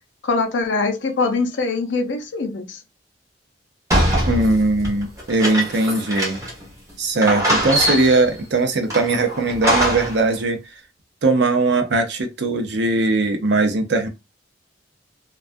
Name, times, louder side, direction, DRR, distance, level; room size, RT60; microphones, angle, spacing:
voice 1, 0.2-2.8, left 3 dB, 75° left, 0.6 m, -23 dB
sound 1, 3.9-6.6 6.9-7.0 7.2-8.3 8.9-10.2, right 1 dB, 15° right, 0.7 m, -22 dB
voice 2, 4.3-6.4 7.0-10.6 11.2-14.1, right 2 dB, 65° right, 0.6 m, -20 dB
2.3 x 2.2 x 2.5 m
head